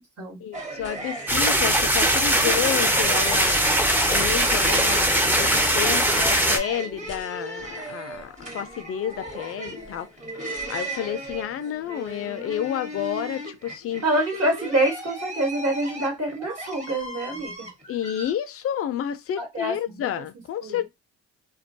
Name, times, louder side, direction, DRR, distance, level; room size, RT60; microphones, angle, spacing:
voice 1, 0.4-3.7 4.1-10.1 10.7-14.0 17.9-20.9, left 10 dB, 50° left, 0.4 m, -30 dB
sound 1, 0.5-18.3, right 1 dB, 25° right, 1.0 m, -36 dB
sound 2, 1.3-6.6, right 1 dB, 5° right, 0.5 m, -21 dB
voice 2, 5.8-6.3 14.0-17.7 19.4-20.1 20.6-20.9, right 1 dB, 50° right, 1.1 m, -26 dB
2.3 x 2.2 x 2.6 m
cardioid pair, 90°, 30 cm